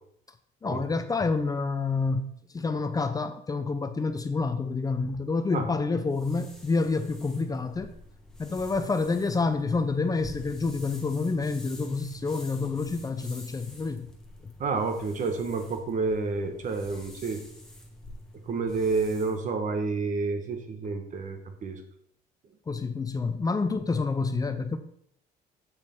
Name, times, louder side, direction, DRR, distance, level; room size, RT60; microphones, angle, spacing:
voice 1, 0.6-7.9 8.4-14.1 14.4-14.5 22.7-24.8, left 4 dB, 20° left, 9 dB, 0.6 m, -28 dB
sound 1, 6.1-19.4, left 1 dB, 5° left, 1.5 m, -48 dB
voice 2, 14.6-17.4 18.4-21.8, right 4 dB, 50° right, 6 dB, 1.4 m, -29 dB
8.1 x 6.5 x 3.7 m, 0.68 s
cardioid pair, 110°, 17 cm